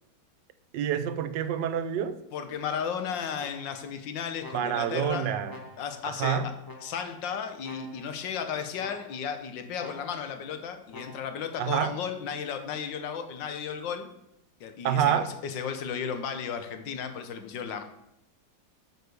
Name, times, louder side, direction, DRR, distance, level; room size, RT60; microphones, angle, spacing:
voice 1, 0.7-2.2 4.5-5.6 6.0-6.5 11.6-11.9 14.8-15.3, right 9 dB, 80° right, 12 dB, 1.3 m, -27 dB
voice 2, 2.3-5.3 5.8-6.5 6.8-14.1 14.6-17.8, left 7 dB, 85° left, 8 dB, 1.6 m, -34 dB
sound 1, 3.4-3.9 4.4-5.0 5.5-6.1 6.6-7.2 7.6-8.3 8.8-9.4 9.8-10.4 10.9-11.5, left 2 dB, 15° left, 0.9 m, -48 dB
8.0 x 5.0 x 6.7 m, 0.83 s
omnidirectional pair, 2.0 m